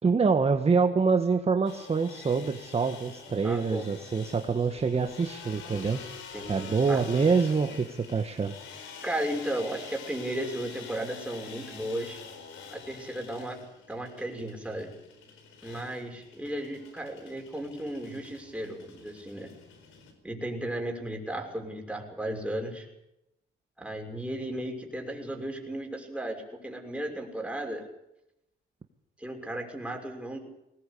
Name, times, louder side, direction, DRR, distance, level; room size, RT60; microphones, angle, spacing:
voice 1, 0.0-6.0 6.5-8.5, right 5 dB, 30° right, 6 dB, 1.5 m, -26 dB
sound 1, 1.6-20.1, left 6 dB, 90° left, 4.6 m, -46 dB
voice 2, 3.4-3.8 6.3-7.0 9.0-12.2 12.7-13.6 13.9-14.9 15.6-19.5 20.2-22.9 23.8-27.9 29.2-30.4, right 1 dB, 5° right, 2 dB, 6.1 m, -35 dB
19.5 x 19.0 x 8.5 m, 0.86 s
cardioid pair, 90°, 20 cm